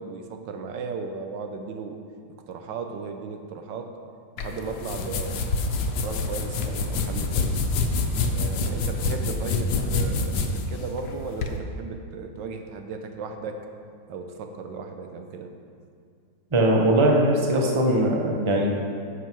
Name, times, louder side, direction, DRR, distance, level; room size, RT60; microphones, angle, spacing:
voice 1, 0.0-2.0 2.5-3.9 4.4-5.5 5.8-7.6 8.3-13.6 14.1-15.5, right 4 dB, 80° right, 5 dB, 1.4 m, -36 dB
sound 1, 4.4-11.5, left 3 dB, 70° left, 1.3 m, -27 dB
voice 2, 16.5-18.7, right 1 dB, 20° right, 0 dB, 0.8 m, -20 dB
11.0 x 6.6 x 4.6 m, 2.2 s
omnidirectional pair, 2.0 m